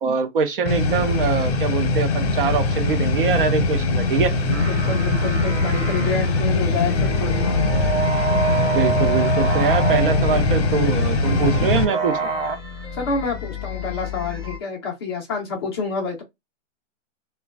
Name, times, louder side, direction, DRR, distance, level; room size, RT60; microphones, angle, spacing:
voice 1, 0.0-4.3 8.7-12.2, right 6 dB, 45° right, 0.6 m, -23 dB
sound 1, 0.7-11.8, left 3 dB, 55° left, 0.8 m, -21 dB
sound 2, 4.3-12.6, right 5 dB, 75° right, 0.9 m, -28 dB
voice 2, 4.7-7.6 12.9-16.2, left 4 dB, 20° left, 0.5 m, -28 dB
sound 3, 5.4-14.6, left 6 dB, 5° right, 0.8 m, -34 dB
3.1 x 2.2 x 2.2 m
hypercardioid pair, 150°, 37 cm